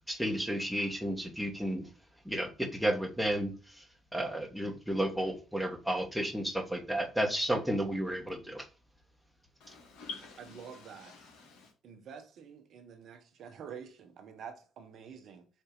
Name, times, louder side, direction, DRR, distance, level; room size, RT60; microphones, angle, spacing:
voice 1, 0.1-1.8 2.2-3.8 4.1-8.6, right 1 dB, ahead, 1.2 m, -32 dB
voice 2, 9.6-11.7, left 4 dB, 65° left, 1.3 m, -48 dB
voice 3, 10.6-11.3 11.8-15.5, right 7 dB, 60° right, 0.9 m, -48 dB
4.4 x 2.7 x 3.8 m
hypercardioid pair, 50°, 0 cm